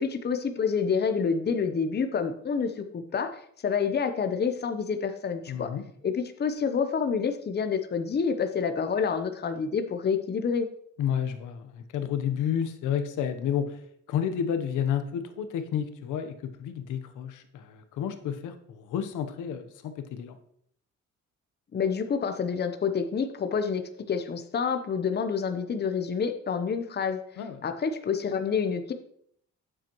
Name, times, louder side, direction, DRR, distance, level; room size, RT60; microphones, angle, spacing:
voice 1, 0.0-5.7 6.0-10.7 21.7-23.8 24.1-27.2 27.6-28.9, left 6 dB, 35° left, 8 dB, 0.8 m, -28 dB
voice 2, 5.5-5.8 11.0-13.8 14.1-20.4 27.4-27.6, left 8 dB, 85° left, 9 dB, 1.0 m, -31 dB
8.8 x 7.4 x 3.0 m, 0.67 s
cardioid pair, 90°, 30 cm